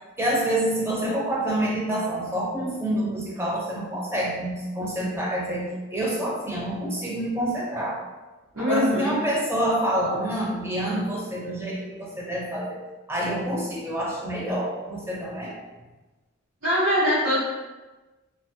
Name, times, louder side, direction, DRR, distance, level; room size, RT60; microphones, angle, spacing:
voice 1, 0.2-8.0 8.6-12.8 13.1-15.5, right 1 dB, 10° right, -5 dB, 0.5 m, -27 dB
voice 2, 8.5-9.2 16.6-17.4, equal, 75° right, -11 dB, 0.9 m, -22 dB
2.8 x 2.3 x 2.7 m, 1.2 s
head